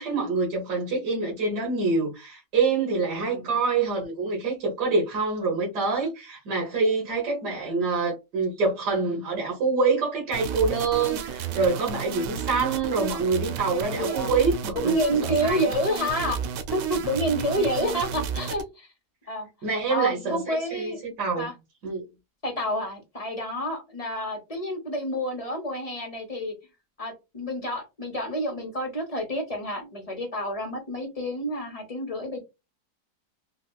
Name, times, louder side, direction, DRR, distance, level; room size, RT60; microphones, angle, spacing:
voice 1, 0.0-15.0 15.2-15.6 19.6-21.5 21.8-22.0, right 4 dB, 75° right, 1.8 m, -26 dB
sound 1, 10.3-18.6, right 8 dB, 90° right, 1.3 m, -32 dB
voice 2, 13.8-14.4 14.7-16.4 16.7-18.9 19.3-19.5 19.9-21.0 21.4-21.5 22.4-26.5 27.0-32.4, equal, 25° left, 0.9 m, -29 dB
4.1 x 2.4 x 2.3 m
omnidirectional pair, 1.8 m